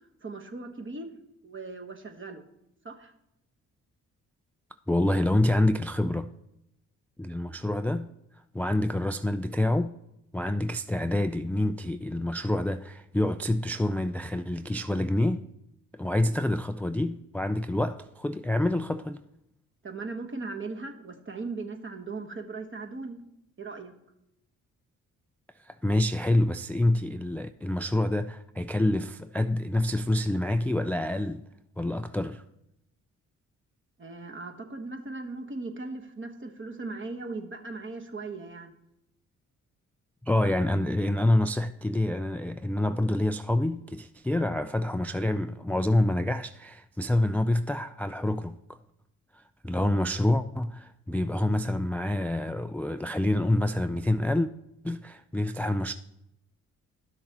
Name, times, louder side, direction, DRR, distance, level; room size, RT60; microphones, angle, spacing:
voice 1, 0.2-1.1 1.4-2.4 2.8-3.1 19.8-23.2 23.6-23.9 34.0-38.7, right 3 dB, 35° right, 1.3 m, -38 dB
voice 2, 4.9-6.3 7.2-8.1 8.5-10.0 10.3-15.5 15.9-19.2 25.6-31.4 31.8-32.4 40.2-48.8 49.3-54.5 54.8-55.9, left 1 dB, 5° left, 0.3 m, -27 dB
11.5 x 6.5 x 3.0 m
hypercardioid pair, 45°, 36 cm